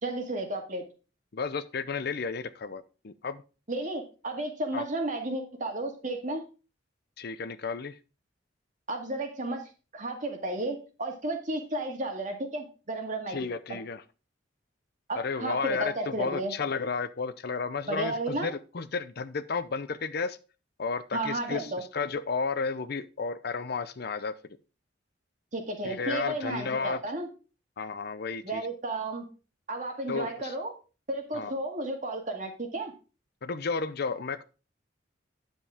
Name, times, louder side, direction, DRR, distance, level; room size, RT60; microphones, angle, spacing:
voice 1, 0.0-0.8 3.7-6.4 8.9-13.5 15.1-16.5 17.9-18.5 21.1-21.8 25.5-27.3 28.4-29.2 29.7-30.7 31.1-32.9, right 2 dB, 45° right, 3 dB, 2.0 m, -33 dB
voice 2, 1.3-3.4 4.7-4.9 7.2-8.0 13.3-14.0 15.2-20.4 20.8-24.3 25.8-27.0 27.8-28.6 30.1-30.5 31.3-31.5 33.4-34.4, left 4 dB, 55° left, 13 dB, 0.6 m, -32 dB
9.8 x 7.5 x 3.6 m, 0.34 s
head